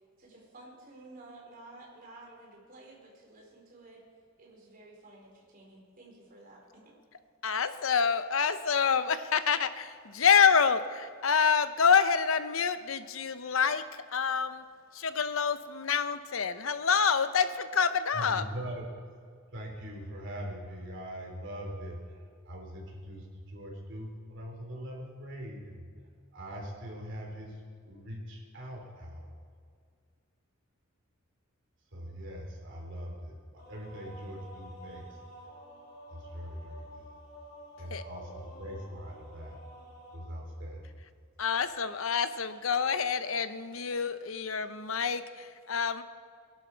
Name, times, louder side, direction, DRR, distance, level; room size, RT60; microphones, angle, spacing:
voice 1, 0.2-4.0 4.4-6.9, right 2 dB, 45° right, -2 dB, 4.0 m, -52 dB
voice 2, 7.4-14.6 14.9-18.4 37.9-38.0 41.4-46.0, left 6 dB, 75° left, 11 dB, 0.8 m, -27 dB
voice 3, 18.1-18.7 19.5-25.8 26.3-27.6 27.9-29.3 31.9-35.1 36.1-37.1 37.8-39.6 40.1-40.8, equal, 60° right, -1 dB, 3.5 m, -42 dB
sound 1, 33.6-40.2, equal, 55° left, 3.9 m, -50 dB
21.5 x 11.5 x 4.6 m, 2.1 s
head